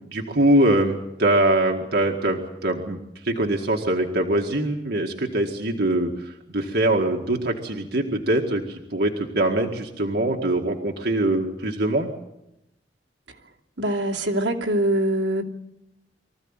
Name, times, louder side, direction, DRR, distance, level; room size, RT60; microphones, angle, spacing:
voice 1, 0.0-3.0 3.2-12.1, right 1 dB, 65° right, 2 dB, 2.0 m, -23 dB
voice 2, 13.8-15.4, right 1 dB, 85° right, 0 dB, 2.8 m, -23 dB
24.0 x 15.0 x 9.0 m, 0.88 s
head